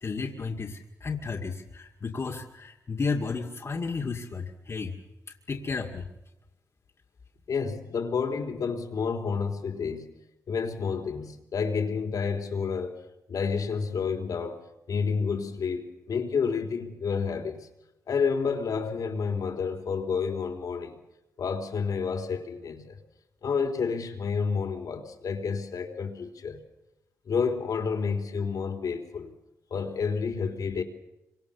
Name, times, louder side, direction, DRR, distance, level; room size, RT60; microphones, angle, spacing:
voice 1, 0.0-5.0 5.5-6.0, left 4 dB, 45° left, 2.2 m, -33 dB
voice 2, 7.5-10.2 10.5-13.0 13.3-14.6 14.9-17.7 18.1-21.0 21.4-23.0 23.4-26.6 27.3-29.3 29.7-30.8, left 5 dB, 75° left, 3.7 m, -30 dB
26.0 x 24.5 x 7.1 m
cardioid pair, 60°, 6 cm